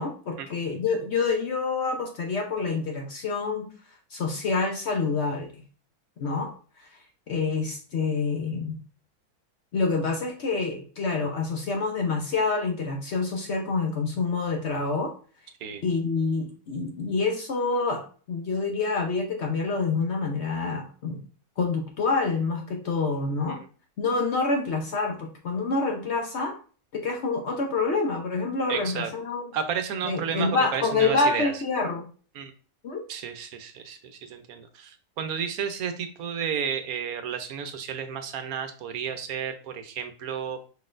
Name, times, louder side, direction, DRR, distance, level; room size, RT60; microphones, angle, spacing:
voice 1, 0.0-3.7 4.1-5.6 6.2-6.5 6.8-6.9 7.3-8.8 9.7-15.1 15.8-21.2 21.6-23.6 24.0-26.5 26.9-29.4 30.0-32.1 32.8-33.0, left 4 dB, 55° left, 2 dB, 0.8 m, -27 dB
voice 2, 28.7-29.1 29.5-31.6 32.3-32.5 33.1-40.6, right 7 dB, 70° right, 8 dB, 1.0 m, -32 dB
5.3 x 4.0 x 2.5 m, 0.40 s
omnidirectional pair, 1.7 m